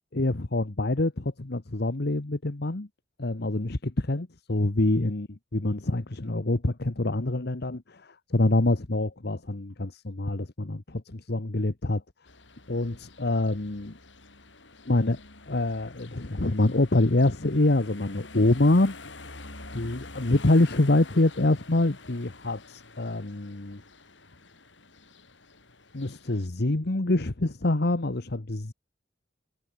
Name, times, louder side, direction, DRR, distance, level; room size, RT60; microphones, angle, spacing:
voice 1, 0.1-2.9 3.2-12.0 12.7-13.9 14.8-15.2 15.5-18.9 19.7-23.8 25.9-28.7, left 2 dB, 60° left, 1.3 m, -25 dB
sound 1, 12.3-26.5, left 3 dB, 80° left, 5.8 m, -48 dB
head